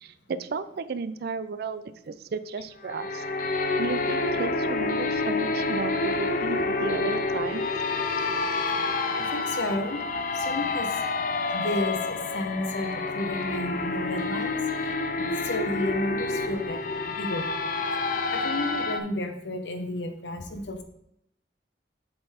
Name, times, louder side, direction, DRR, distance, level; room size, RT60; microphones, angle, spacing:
voice 1, 0.0-3.2 3.8-7.6, right 4 dB, 60° right, 13 dB, 0.4 m, -34 dB
sound 1, 2.8-19.0, left 3 dB, 50° left, 0.5 m, -28 dB
voice 2, 9.1-10.0 10.3-10.9 11.5-14.9 15.2-17.5 18.3-20.8, left 1 dB, 75° left, 6 dB, 0.9 m, -32 dB
7.7 x 3.9 x 4.3 m, 0.77 s
head